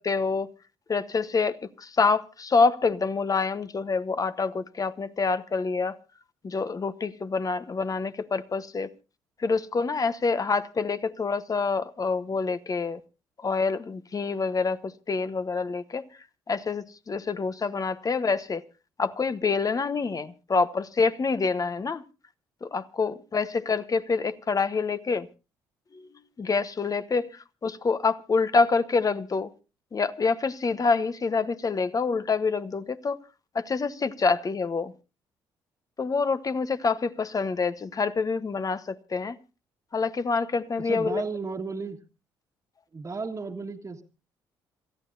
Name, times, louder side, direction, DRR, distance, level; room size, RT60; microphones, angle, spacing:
voice 1, 0.0-0.5 0.9-6.0 6.4-8.9 9.4-13.0 13.4-16.1 16.5-18.6 19.0-22.0 22.6-25.3 25.9-26.1 26.4-29.5 29.9-33.2 33.5-34.9 36.0-39.4 39.9-41.2, left 4 dB, 35° left, 1.1 m, -26 dB
voice 2, 40.8-42.0 42.9-44.0, right 4 dB, 30° right, 1.7 m, -34 dB
27.5 x 14.0 x 2.6 m
hypercardioid pair, 50°, 10 cm